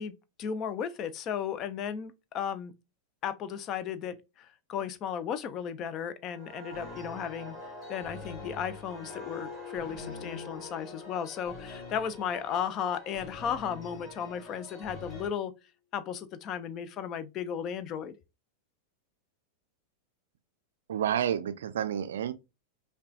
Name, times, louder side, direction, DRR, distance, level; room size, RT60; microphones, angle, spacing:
voice 1, 0.0-2.7 3.2-7.5 7.9-15.5 15.9-18.2, left 8 dB, 35° left, 0.4 m, -35 dB
sound 1, 6.3-13.7 14.1-14.4, left 3 dB, 5° right, 1.4 m, -46 dB
sound 2, 6.7-15.3, left 3 dB, 15° left, 2.1 m, -46 dB
voice 2, 20.9-22.3, right 9 dB, 60° right, 0.4 m, -30 dB
5.4 x 2.3 x 2.3 m
figure-of-eight pair, 90°, 0 cm